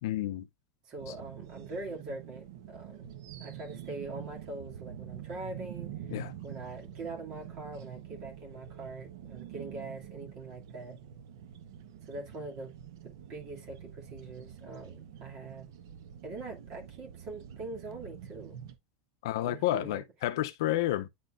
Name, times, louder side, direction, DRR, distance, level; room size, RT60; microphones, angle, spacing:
voice 1, 0.0-0.5 6.1-6.3 19.2-21.1, left 14 dB, 70° left, 0.6 m, -30 dB
voice 2, 0.8-3.1 3.4-6.1 6.4-11.0 12.0-12.7 13.0-15.7 16.2-18.6 19.4-20.0, right 2 dB, 35° right, 2.5 m, -43 dB
sound 1, 1.0-18.8, right 10 dB, 75° right, 1.0 m, -46 dB
10.0 x 4.2 x 2.5 m
supercardioid pair, 175°, 2 cm